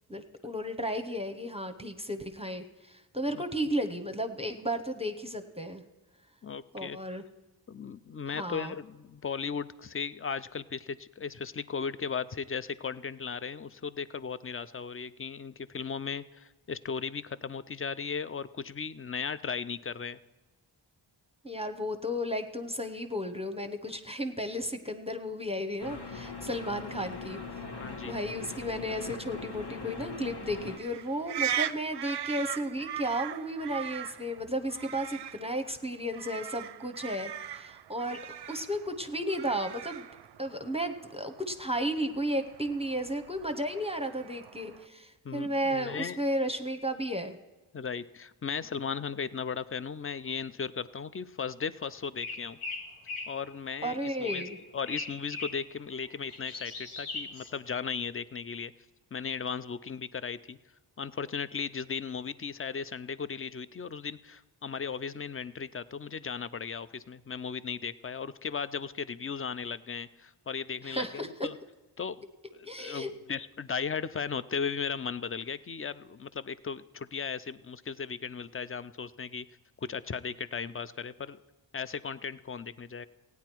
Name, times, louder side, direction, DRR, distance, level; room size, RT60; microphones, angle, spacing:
voice 1, 0.1-5.8 6.7-7.2 8.3-8.7 21.4-27.4 28.0-38.2 38.5-40.1 40.4-47.4 53.8-54.6 70.8-71.3 72.6-73.1, equal, 10° right, 7 dB, 0.9 m, -33 dB
voice 2, 6.4-7.0 7.7-20.2 26.8-27.0 27.8-28.1 45.2-46.2 47.7-52.6 53.3-54.4 54.7-58.7 59.1-60.6 61.0-71.6 72.0-72.2 72.5-79.5 79.8-81.4 81.7-83.1, left 6 dB, 30° left, 15 dB, 0.5 m, -36 dB
sound 1, 25.8-30.8, left 4 dB, 55° left, 1.5 m, -41 dB
sound 2, 30.8-44.9, right 10 dB, 55° right, 0.5 m, -40 dB
sound 3, 52.2-53.4 54.2-54.6 54.9-55.6 56.1-57.5, left 3 dB, 90° left, 1.5 m, -39 dB
16.0 x 9.5 x 4.5 m, 1.1 s
cardioid pair, 50°, 49 cm